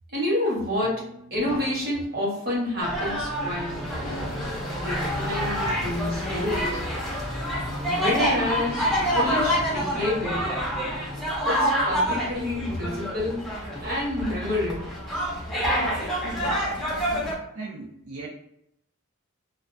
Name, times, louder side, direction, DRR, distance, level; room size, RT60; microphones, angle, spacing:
voice 1, 0.1-1.0 1.3-3.9 4.7-6.9 7.9-8.9 9.1-10.5 11.4-13.5 13.8-15.0, left 1 dB, 45° right, -5 dB, 1.0 m, -28 dB
sound 1, 0.8-2.8 3.4-5.7 6.0-8.3 8.6-10.6, equal, 75° left, 0.5 m, -43 dB
sound 2, 2.8-17.3, equal, ahead, 0.5 m, -27 dB
voice 2, 7.4-8.0 17.5-18.3, right 3 dB, 80° right, -2 dB, 0.4 m, -40 dB
2.2 x 2.2 x 2.5 m, 0.76 s
head